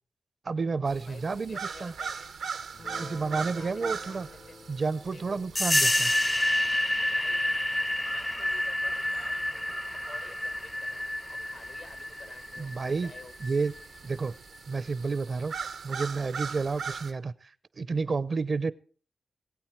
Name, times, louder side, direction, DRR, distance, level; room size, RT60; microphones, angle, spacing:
voice 1, 0.4-1.9 3.0-4.3 4.7-6.1 12.6-13.1 13.4-13.7 14.0-14.4 14.7-15.5 15.8-17.3 17.8-18.7, right 4 dB, 60° right, 19 dB, 0.6 m, -30 dB
sound 1, 0.9-17.1, right 6 dB, 90° right, 0.8 m, -41 dB
voice 2, 1.0-2.4 3.3-4.6 5.1-5.4 7.1-7.4 8.0-13.3 14.8-14.9 16.5-16.7, left 4 dB, 80° left, 11 dB, 1.5 m, -52 dB
Guitar, 2.7-9.3, left 4 dB, 60° left, 0.7 m, -51 dB
sound 2, 5.6-13.8, left 1 dB, 20° left, 0.5 m, -29 dB
20.0 x 8.6 x 4.6 m, 0.42 s
cardioid pair, 50°, 0 cm